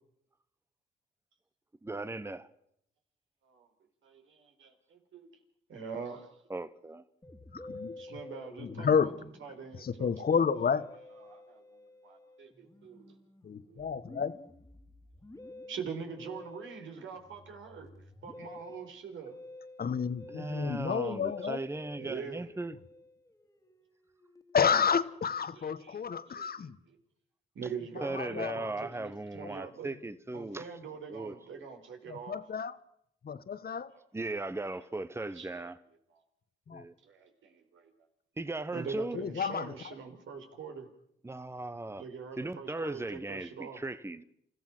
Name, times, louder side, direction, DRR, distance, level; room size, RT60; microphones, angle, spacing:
voice 1, 1.8-2.5 6.5-7.0 20.3-22.7 28.0-30.7 31.1-31.7 34.1-35.8 36.7-36.9 38.4-39.2 41.2-42.0 42.4-44.2, right 2 dB, 10° right, 1.1 m, -37 dB
voice 2, 4.0-5.3 5.7-6.3 8.0-9.1 9.4-10.1 11.2-11.6 12.0-13.2 13.7-13.9 15.7-19.4 21.0-21.1 21.4-21.6 22.0-22.5 25.3-26.0 26.4-27.0 27.5-29.9 30.3-32.4 33.9-34.0 35.3-35.7 36.1-36.2 37.0-37.9 38.7-40.9 42.0-43.8, right 6 dB, 75° right, 4.4 m, -44 dB
Musical instrument, 7.2-24.8, left 2 dB, 15° left, 2.3 m, -51 dB
voice 3, 7.5-8.0 8.6-9.1 9.8-10.8 13.4-14.3 19.8-21.6 24.5-26.8 28.1-28.6 32.1-32.8 33.2-33.9 36.7-36.8 39.1-39.9, left 6 dB, 50° left, 1.4 m, -30 dB
28.0 x 15.0 x 6.3 m
supercardioid pair, 65°, 20 cm